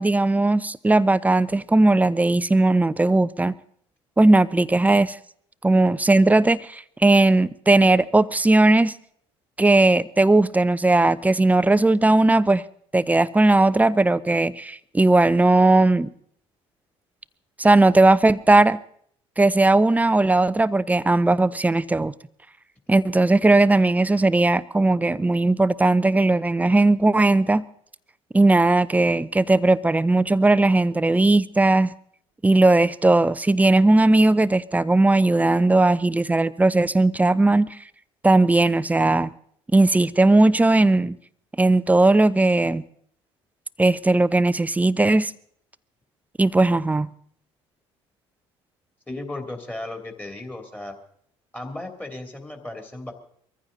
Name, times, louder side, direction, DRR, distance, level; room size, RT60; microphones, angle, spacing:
voice 1, 0.0-3.5 4.2-5.2 5.6-8.9 9.6-12.6 12.9-16.1 17.6-18.8 19.4-22.1 22.9-27.6 28.3-31.9 32.4-37.7 38.2-39.3 39.7-41.2 41.6-42.8 43.8-45.3 46.4-47.1, right 2 dB, 10° right, 0.6 m, -18 dB
voice 2, 49.1-51.0 51.5-53.1, left 2 dB, 10° left, 3.0 m, -35 dB
23.0 x 14.5 x 4.0 m
figure-of-eight pair, 55°, 14 cm